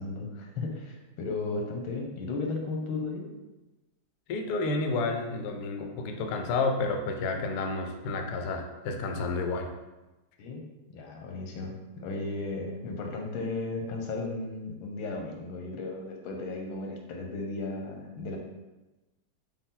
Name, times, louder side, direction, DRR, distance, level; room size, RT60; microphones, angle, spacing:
voice 1, 0.0-3.3 10.4-10.7 10.9-18.4, left 3 dB, 90° left, 1 dB, 1.6 m, -35 dB
voice 2, 4.3-9.7, left 3 dB, 75° left, 4 dB, 0.9 m, -30 dB
5.2 x 2.3 x 3.7 m, 1.1 s
omnidirectional pair, 2.2 m